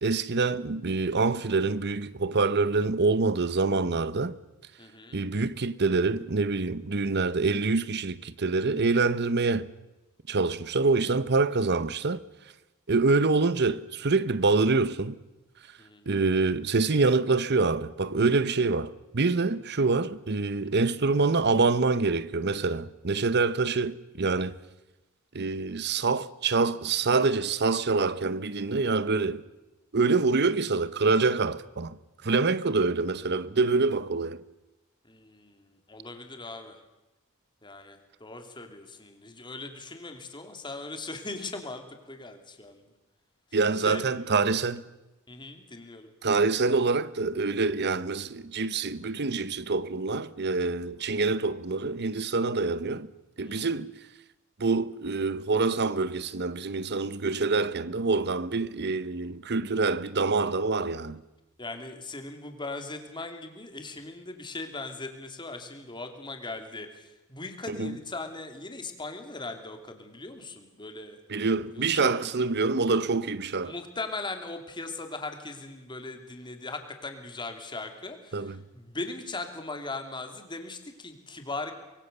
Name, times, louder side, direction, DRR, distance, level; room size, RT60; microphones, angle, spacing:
voice 1, 0.0-4.4 5.1-9.7 10.3-12.2 12.9-15.1 16.1-24.6 25.3-29.4 29.9-34.4 43.5-44.8 46.2-53.1 53.4-53.9 54.6-61.2 67.7-67.9 71.3-73.7 78.3-78.6, right 3 dB, 55° right, 1.0 m, -26 dB
voice 2, 4.8-5.2 15.8-16.1 35.0-36.8 37.6-42.9 43.5-44.1 45.3-46.1 53.4-53.7 61.6-71.2 71.8-72.1 73.6-81.7, left 2 dB, 20° left, 2.9 m, -39 dB
24.5 x 22.5 x 6.9 m
head